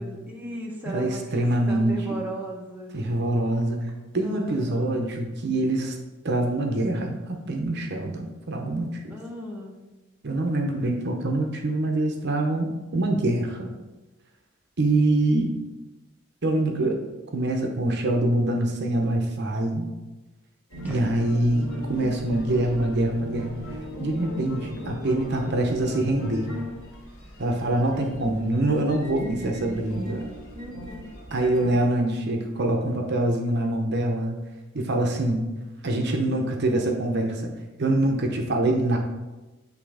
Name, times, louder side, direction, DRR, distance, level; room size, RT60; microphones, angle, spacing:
voice 1, 0.0-2.9 4.2-4.9 9.1-9.8 20.8-21.0 22.4-22.5 30.5-31.1, equal, 10° right, -2 dB, 1.0 m, -36 dB
voice 2, 0.8-2.0 2.9-3.9 4.1-6.0 6.2-9.2 10.2-13.7 14.8-15.5 16.4-17.0 17.3-19.9 20.8-23.5 24.0-26.5 27.4-30.3 31.3-34.3 34.7-35.5 35.8-37.5 37.8-39.0, right 1 dB, 55° right, 3 dB, 0.8 m, -25 dB
sound 1, 20.7-31.8, equal, 75° left, 2.4 m, -38 dB
8.3 x 3.3 x 4.9 m, 1.1 s
head